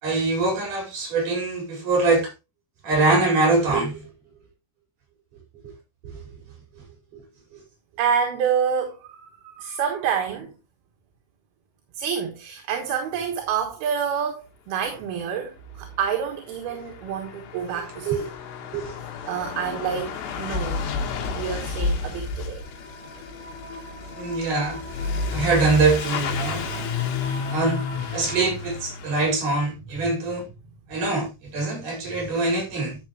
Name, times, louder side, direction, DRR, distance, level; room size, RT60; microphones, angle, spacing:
voice 1, 0.0-2.3 2.8-4.0 5.6-5.7 6.0-6.2 7.1-7.2 18.1-18.3 18.7-19.0 24.1-24.8 25.3-26.6 27.5-27.8 28.1-30.4 30.9-33.0, right 3 dB, 50° right, 6.5 m, -23 dB
voice 2, 8.0-10.5 12.0-18.3 19.3-20.8 21.4-22.6, right 7 dB, 70° right, 3.2 m, -28 dB
Truck / Accelerating revving vroom, 15.7-15.8 16.0-29.4, left 4 dB, 85° left, 3.6 m, -31 dB
sound 1, 22.6-28.5, left 2 dB, 60° left, 5.3 m, -39 dB
11.5 x 8.0 x 3.0 m
omnidirectional pair, 4.8 m